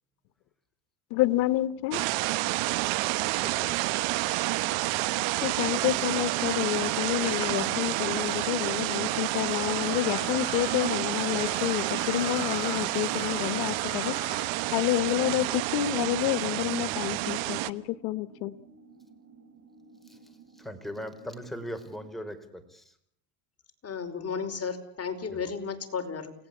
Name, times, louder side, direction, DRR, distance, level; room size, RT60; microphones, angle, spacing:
voice 1, 1.1-2.0 4.5-4.6 5.4-14.1 14.7-18.6, left 16 dB, 75° left, 14 dB, 1.4 m, -29 dB
sound 1, 1.9-17.7, right 19 dB, 65° right, 1.4 m, -29 dB
sound 2, 2.2-22.2, right 5 dB, 30° right, 4.7 m, -54 dB
voice 2, 3.4-3.8 20.0-20.2 20.5-22.9 25.3-25.4, equal, ahead, 6 dB, 4.9 m, -39 dB
sound 3, 5.6-14.7, left 18 dB, 60° left, 2.2 m, -44 dB
voice 3, 23.8-26.3, left 6 dB, 30° left, 6 dB, 5.1 m, -33 dB
30.0 x 19.0 x 8.6 m, 0.69 s
supercardioid pair, 110°, 49 cm